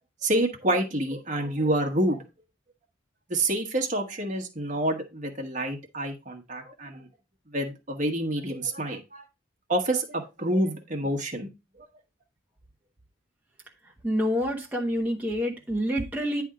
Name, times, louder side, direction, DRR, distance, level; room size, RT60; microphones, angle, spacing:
voice 1, 0.2-2.2 3.3-7.1 7.5-9.2 9.7-11.5, right 1 dB, 35° right, 1.4 m, -28 dB
voice 2, 13.8-16.4, equal, 5° right, 1.2 m, -27 dB
10.0 x 3.5 x 4.9 m
head